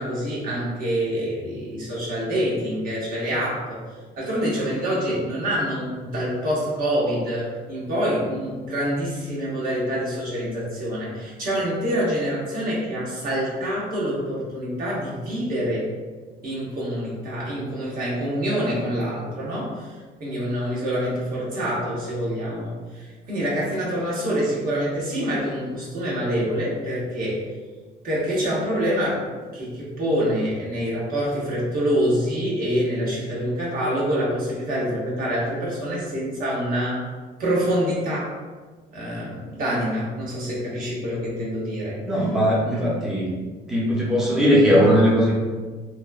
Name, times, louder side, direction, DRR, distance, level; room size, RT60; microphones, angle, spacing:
voice 1, 0.0-3.8 4.2-15.9 16.4-27.4 28.0-37.1 37.4-38.3 38.9-42.0 42.6-43.0, equal, 60° right, -6 dB, 1.1 m, -26 dB
voice 2, 42.1-43.3 43.7-45.3, equal, 5° right, -6 dB, 0.6 m, -19 dB
2.9 x 2.3 x 2.3 m, 1.4 s
cardioid pair, 110°, 17 cm